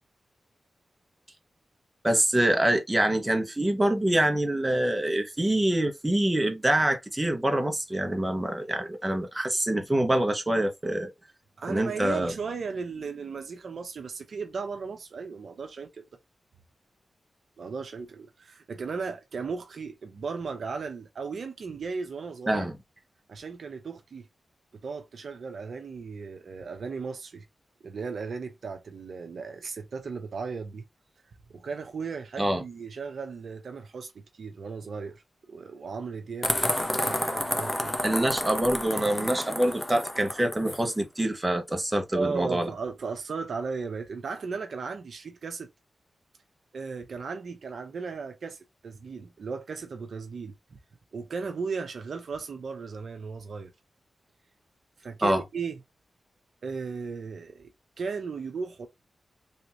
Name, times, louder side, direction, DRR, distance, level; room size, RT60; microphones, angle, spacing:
voice 1, 2.0-11.1 11.7-12.3 22.5-22.7 32.4-32.6 38.0-42.7 55.2-55.4, right 1 dB, 20° right, 1.1 m, -25 dB
voice 2, 11.6-16.0 17.6-22.7 23.3-24.3 24.8-27.5 27.8-30.8 31.5-35.2 35.5-37.9 42.1-45.7 46.7-50.8 51.1-53.7 55.0-55.8 56.6-57.7 58.0-58.9, right 5 dB, 70° right, 0.6 m, -36 dB
sound 1, 36.4-40.8, left 1 dB, 15° left, 0.9 m, -30 dB
3.5 x 2.8 x 2.9 m
supercardioid pair, 40°, 0 cm